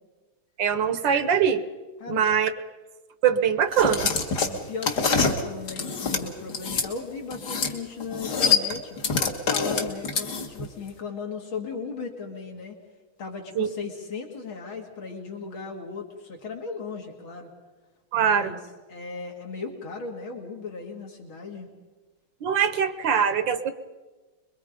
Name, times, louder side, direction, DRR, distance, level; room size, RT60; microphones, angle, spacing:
voice 1, 0.6-1.6 2.1-2.5 3.2-4.1 13.6-13.7 18.1-18.5 22.4-23.7, right 7 dB, 65° right, 12 dB, 1.6 m, -22 dB
sound 1, 3.7-6.9 7.3-10.7, left 5 dB, 50° left, 2.2 m, -25 dB
voice 2, 4.4-9.0 9.5-12.8 13.2-17.5 18.1-18.6 18.9-21.7, left 5 dB, 70° left, 2 dB, 3.3 m, -36 dB
25.5 x 22.5 x 5.2 m, 1.3 s
omnidirectional pair, 2.3 m